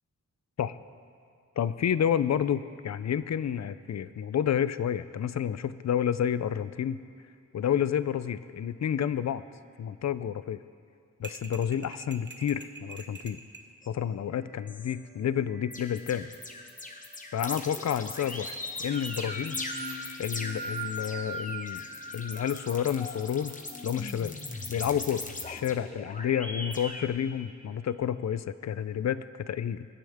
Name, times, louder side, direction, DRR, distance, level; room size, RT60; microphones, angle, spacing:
voice 1, 1.6-7.0 7.5-9.4 9.8-10.6 11.2-13.4 13.9-16.3 17.3-18.5 18.8-19.6 20.2-21.8 22.1-24.4 24.7-29.9, left 9 dB, 60° left, 15 dB, 0.4 m, -30 dB
sound 1, 11.2-13.7, right 3 dB, 35° right, 0.8 m, -45 dB
sound 2, 13.8-13.9 14.4-14.9 15.5-27.1, left 1 dB, 25° left, 0.9 m, -38 dB
21.5 x 9.8 x 3.5 m, 2.3 s
wide cardioid pair, 125°, 30 cm